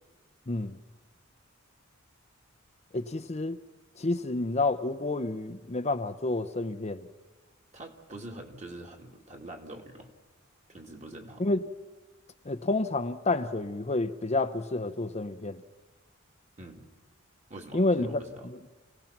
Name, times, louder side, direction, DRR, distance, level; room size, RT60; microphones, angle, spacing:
voice 1, 0.5-0.8 2.9-3.6 4.0-7.1 11.4-11.6 12.5-15.6 17.7-18.2, left 2 dB, 30° left, 0.7 m, -29 dB
voice 2, 7.7-10.1 10.7-11.5 16.6-16.9 17.5-18.5, right 1 dB, 35° right, 2.4 m, -44 dB
29.5 x 17.5 x 5.9 m
head